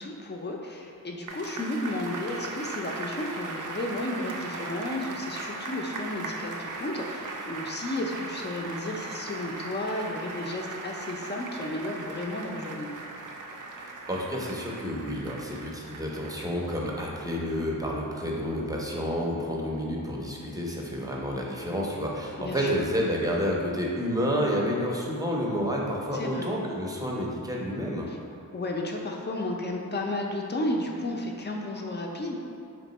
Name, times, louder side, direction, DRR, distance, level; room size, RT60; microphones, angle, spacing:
voice 1, 0.0-12.9 22.4-22.7 26.1-26.5 28.1-28.2 28.5-32.3, left 1 dB, 30° left, 0 dB, 0.5 m, -33 dB
sound 1, 1.3-17.8 18.2-18.3, right 3 dB, 60° right, 0.5 m, -38 dB
voice 2, 14.1-28.1, equal, 10° right, -3 dB, 0.6 m, -29 dB
3.4 x 2.9 x 4.0 m, 2.6 s
wide cardioid pair, 75°, 35 cm